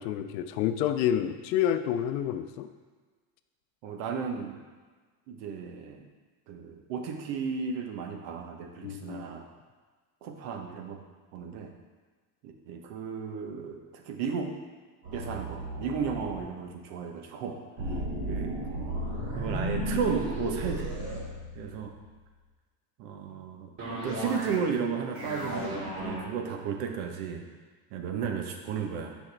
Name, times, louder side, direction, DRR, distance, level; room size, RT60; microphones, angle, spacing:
voice 1, 0.0-2.7 8.8-9.2 17.9-18.3, left 10 dB, 90° left, 9 dB, 0.6 m, -29 dB
voice 2, 3.8-4.6 5.3-6.1 6.5-9.4 10.2-11.0 11.3-11.7 12.4-14.5 15.1-18.6 19.3-21.0 21.5-21.9 23.0-27.5 27.9-29.2, right 6 dB, 65° right, 4 dB, 1.0 m, -34 dB
sound 1, 15.0-16.5 17.8-22.0 23.8-24.7 25.0-26.2, right 1 dB, 45° right, 1.9 m, -34 dB
6.3 x 5.1 x 3.3 m, 1.4 s
supercardioid pair, 130°, 49 cm